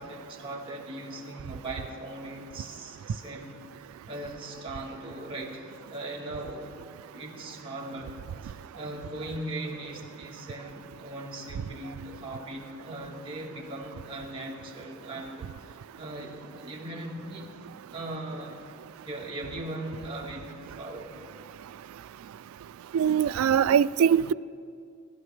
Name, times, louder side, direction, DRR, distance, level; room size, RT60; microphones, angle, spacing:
voice 1, 0.0-6.7 7.0-17.5 17.9-18.6 19.0-21.1, right 1 dB, 25° right, -2 dB, 1.7 m, -39 dB
voice 2, 22.9-24.3, right 8 dB, 85° right, 16 dB, 0.3 m, -22 dB
22.0 x 11.5 x 3.3 m, 2.3 s
head